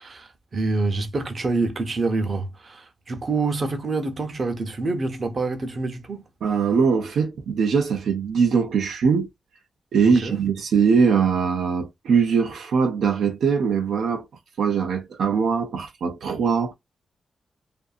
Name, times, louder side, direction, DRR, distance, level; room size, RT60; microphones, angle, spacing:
voice 1, 0.0-6.2 10.2-10.4, right 3 dB, 45° right, 0.7 m, -26 dB
voice 2, 6.4-9.3 9.9-14.3 14.6-16.7, right 6 dB, 85° right, 0.6 m, -21 dB
2.6 x 2.6 x 2.3 m
cardioid pair, 95°, 0 cm